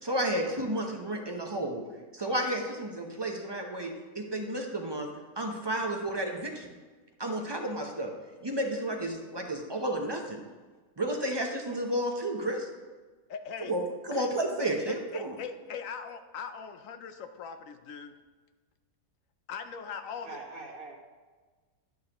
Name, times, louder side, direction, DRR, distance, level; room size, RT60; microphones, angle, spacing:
voice 1, 0.0-1.8 2.1-5.1 5.4-6.8 7.2-8.1 8.4-10.4 11.0-12.7 13.6-15.4, right 1 dB, 25° right, 2 dB, 0.6 m, -32 dB
voice 2, 13.3-13.7 14.1-14.3 14.9-18.1 19.5-20.3, left 6 dB, 70° left, 8 dB, 0.9 m, -40 dB
voice 3, 20.2-21.0, right 3 dB, 70° right, -1 dB, 1.9 m, -43 dB
11.5 x 6.5 x 2.9 m, 1.3 s
omnidirectional pair, 1.5 m